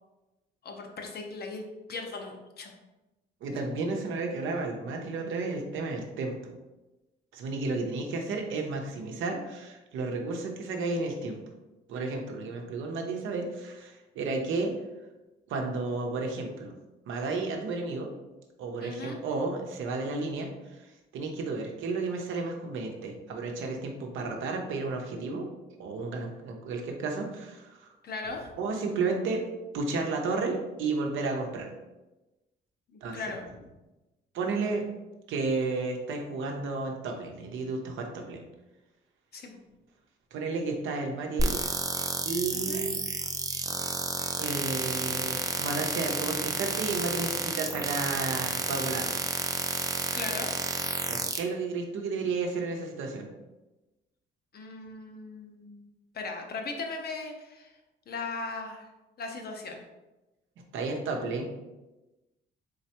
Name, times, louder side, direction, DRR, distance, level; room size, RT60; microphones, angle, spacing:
voice 1, 0.6-1.6 1.9-2.7 18.8-19.2 28.0-28.5 32.9-33.4 39.3-39.6 42.5-42.8 50.1-50.5 54.5-55.9 56.1-57.7 58.1-58.9 59.2-59.8, left 3 dB, 55° left, 3 dB, 0.7 m, -38 dB
voice 2, 3.4-6.5 7.3-11.4 11.9-14.7 15.5-16.7 17.1-18.1 18.6-20.5 20.8-25.5 25.8-27.9 28.6-29.4 29.7-31.7 33.0-33.2 34.3-34.8 35.3-38.4 40.3-41.6 42.2-43.0 43.6-43.7 44.4-49.2 51.1-53.3 60.7-61.5, right 3 dB, 80° right, 2 dB, 0.7 m, -32 dB
sound 1, 41.4-51.4, right 3 dB, 20° right, 0.4 m, -31 dB
3.9 x 3.2 x 2.8 m, 1.1 s
cardioid pair, 90°, 20 cm